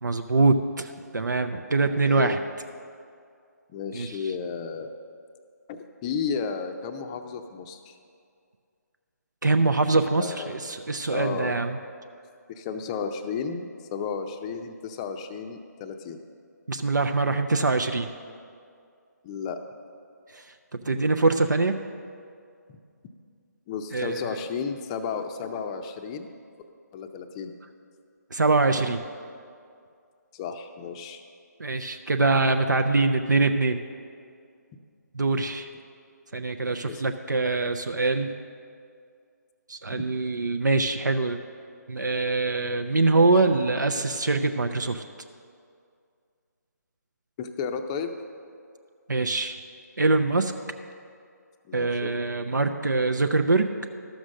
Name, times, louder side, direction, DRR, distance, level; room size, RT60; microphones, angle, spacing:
voice 1, 0.0-2.4 3.9-4.2 9.4-11.8 16.7-18.1 20.3-20.4 20.7-21.8 23.9-24.3 28.3-29.0 31.6-33.8 35.1-35.7 36.3-38.3 39.7-41.4 41.9-45.0 49.1-49.6 50.0-50.5 51.7-53.7, right 3 dB, 90° right, 6 dB, 0.6 m, -24 dB
voice 2, 1.9-2.4 3.7-4.9 5.7-8.0 10.2-10.6 11.1-11.6 12.5-16.2 19.2-19.6 20.8-20.9 22.7-22.8 23.7-26.3 26.9-27.5 30.3-31.2 36.8-37.0 39.9-40.0 47.4-48.1 51.6-52.2, left 6 dB, 20° left, 7 dB, 0.5 m, -33 dB
13.0 x 6.3 x 6.3 m, 2.3 s
figure-of-eight pair, 150°, 10 cm